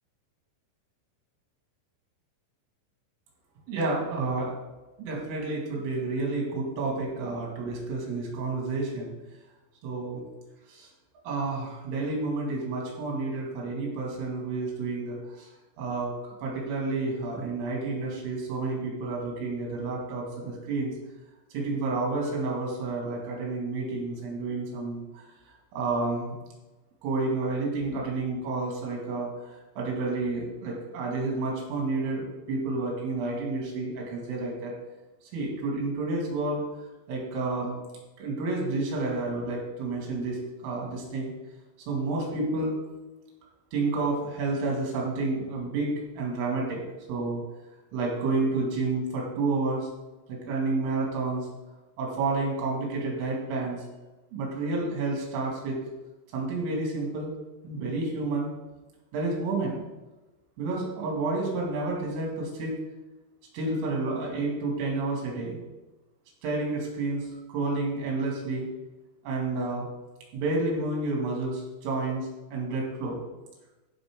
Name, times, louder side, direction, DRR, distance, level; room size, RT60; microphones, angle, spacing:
voice 1, 3.7-4.5 5.0-9.1 9.8-10.2 10.7-10.9 11.2-15.5 15.8-16.1 16.4-20.9 21.5-25.2 25.7-26.3 27.0-34.7 35.3-36.6 37.1-37.8 38.2-40.4 40.6-41.3 41.9-42.8 43.7-46.8 47.1-47.4 47.9-49.9 50.3-51.5 52.0-53.8 54.3-55.8 56.3-57.3 57.6-58.5 59.1-59.8 60.6-62.8 63.5-65.6 66.4-68.7 69.2-69.9 70.3-73.2, right 3 dB, 85° right, -2 dB, 4.8 m, -30 dB
15.5 x 5.4 x 3.7 m, 1.1 s
omnidirectional pair, 5.6 m